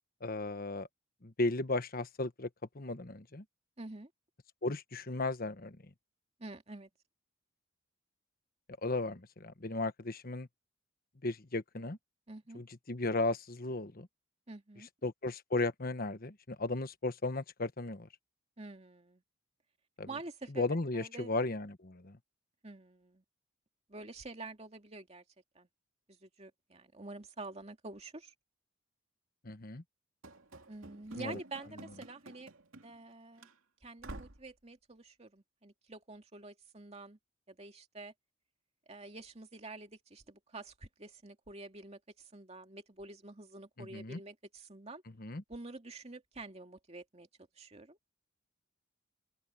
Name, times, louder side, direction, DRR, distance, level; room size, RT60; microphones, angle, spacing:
voice 1, 0.2-0.9 1.2-2.5 2.7-3.4 4.6-5.8 8.8-10.5 11.2-12.0 12.5-14.1 15.0-18.1 20.0-20.1 20.6-22.2 29.4-29.8 31.1-31.3 43.8-44.2 45.2-45.4, left 2 dB, 45° left, 1.2 m, -35 dB
voice 2, 3.8-4.1 6.4-6.9 12.3-12.6 14.5-14.9 18.6-19.2 20.1-20.7 20.9-21.3 22.6-23.2 23.9-25.2 25.5-25.7 26.1-28.3 30.7-32.5 32.8-33.5 33.8-37.2 37.5-38.1 38.9-45.0 45.5-47.3 47.6-48.0, right 2 dB, 30° right, 2.4 m, -48 dB
Run / Slam, 30.2-33.1 33.4-33.5 34.0-34.5, right 2 dB, 75° right, 2.7 m, -50 dB
open air
head